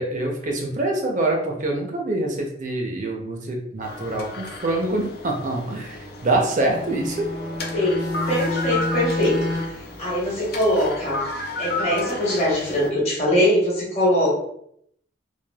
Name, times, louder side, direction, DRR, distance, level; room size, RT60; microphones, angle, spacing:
voice 1, 0.0-7.3, right 2 dB, 45° right, 1 dB, 0.5 m, -25 dB
sound 1, 3.8-12.9, left 2 dB, 55° left, 0.4 m, -33 dB
Bowed string instrument, 6.5-9.9, left 1 dB, 20° left, 0.7 m, -29 dB
voice 2, 7.7-11.2 11.6-14.3, left 1 dB, 35° left, -5 dB, 1.1 m, -22 dB
3.2 x 2.2 x 2.2 m, 0.70 s
head